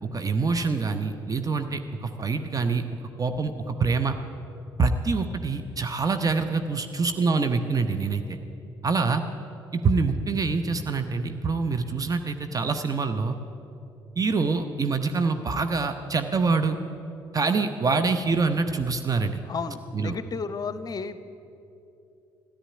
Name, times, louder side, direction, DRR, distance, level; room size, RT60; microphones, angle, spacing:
voice 1, 0.0-2.8 3.2-4.1 4.8-8.4 8.8-9.2 9.7-13.4 14.2-16.8 17.3-19.4 19.9-20.2, right 4 dB, 30° right, 8 dB, 0.8 m, -25 dB
voice 2, 19.5-21.2, left 5 dB, 35° left, 13 dB, 0.8 m, -33 dB
14.5 x 10.0 x 8.6 m, 2.8 s
figure-of-eight pair, 45°, 12 cm